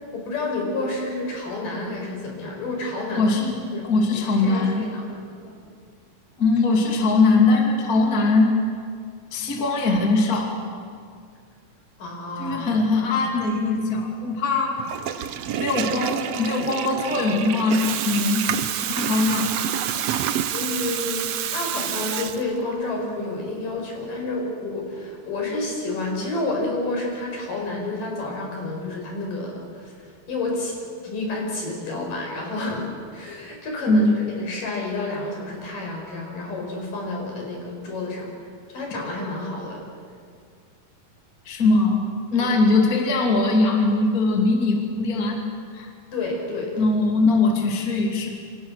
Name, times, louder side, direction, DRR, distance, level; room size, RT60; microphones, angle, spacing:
voice 1, 0.0-3.3 3.7-5.5 12.0-13.1 20.5-29.9 30.3-30.8 31.0-32.8 33.1-34.1 34.4-38.3 38.7-39.8 42.4-42.6 46.1-46.9, left 2 dB, 65° left, 0 dB, 6.6 m, -30 dB
voice 2, 3.1-3.6 3.8-4.8 6.4-8.5 9.3-10.6 12.4-14.8 15.6-18.5 18.9-19.5 33.9-34.1 41.4-45.4 45.7-45.9 46.8-48.3, left 3 dB, 25° left, 1 dB, 2.7 m, -21 dB
Water tap faucet / Toilet flush, 14.8-22.8, right 10 dB, 70° right, 1.5 m, -28 dB
28.0 x 26.0 x 6.5 m, 2.2 s
omnidirectional pair, 4.1 m